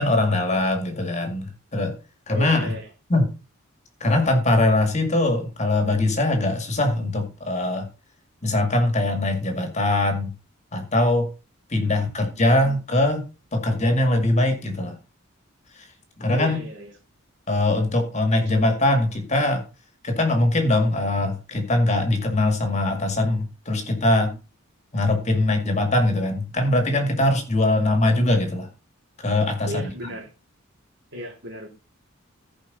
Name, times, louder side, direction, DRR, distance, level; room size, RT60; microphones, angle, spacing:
voice 1, 0.0-1.9 2.3-2.7 3.1-3.3 4.0-7.9 8.4-10.3 10.7-11.3 11.7-13.3 13.5-15.0 16.2-16.6 17.5-19.6 20.0-24.4 24.9-28.7 29.2-29.9, left 2 dB, 35° left, 5 dB, 2.1 m, -22 dB
voice 2, 2.3-2.9 12.0-12.5 16.3-16.9 29.7-30.3 31.1-31.7, equal, 60° right, 0 dB, 3.7 m, -35 dB
15.0 x 5.3 x 4.1 m, 0.32 s
head